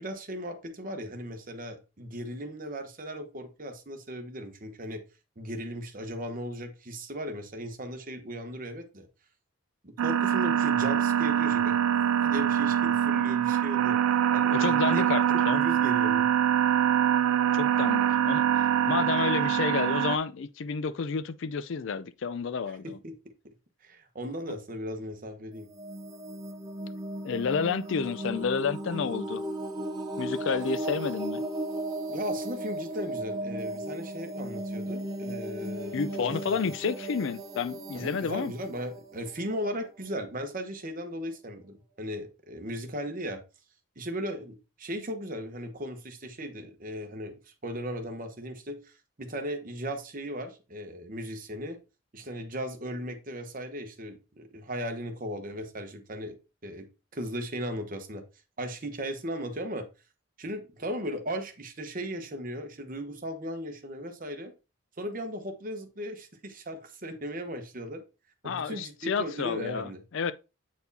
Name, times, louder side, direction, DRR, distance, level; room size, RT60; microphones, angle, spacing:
voice 1, 0.0-5.0 5.4-9.1 9.8-14.0 14.3-15.0 15.5-16.3 22.8-23.1 23.8-25.7 32.1-36.3 37.9-43.4 44.0-47.4 47.6-48.9 49.2-51.8 52.1-56.4 56.6-56.9 57.1-58.2 58.6-59.9 60.4-64.5 65.0-68.0 68.4-70.0, equal, 40° right, 1.0 m, -37 dB
sound 1, 10.0-20.2, right 9 dB, 75° right, 0.3 m, -24 dB
voice 2, 14.5-15.6 17.5-23.0 27.2-29.4 30.2-31.4 35.9-38.5 68.4-70.3, left 5 dB, 60° left, 0.4 m, -30 dB
sound 2, 25.6-40.2, right 1 dB, 20° right, 0.7 m, -36 dB
8.4 x 4.4 x 2.7 m
head